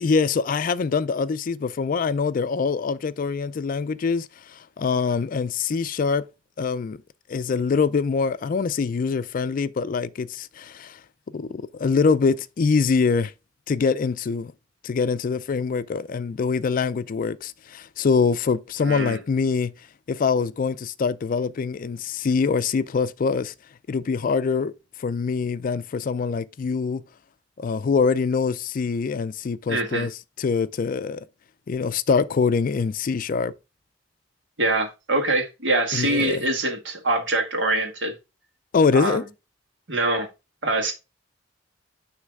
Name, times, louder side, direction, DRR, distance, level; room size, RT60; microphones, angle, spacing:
voice 1, 0.0-6.3 6.6-7.0 7.3-11.0 11.3-13.3 13.7-14.5 14.8-19.7 20.1-23.5 23.9-24.7 25.0-27.0 27.6-30.1 30.4-31.2 31.7-33.5 35.9-36.4 38.7-39.2, left 5 dB, 45° left, 0.4 m, -24 dB
voice 2, 18.8-19.2 29.7-30.1 34.6-38.1 38.9-39.2 39.9-40.3 40.6-40.9, right 2 dB, 75° right, 1.7 m, -24 dB
9.6 x 3.2 x 3.4 m
head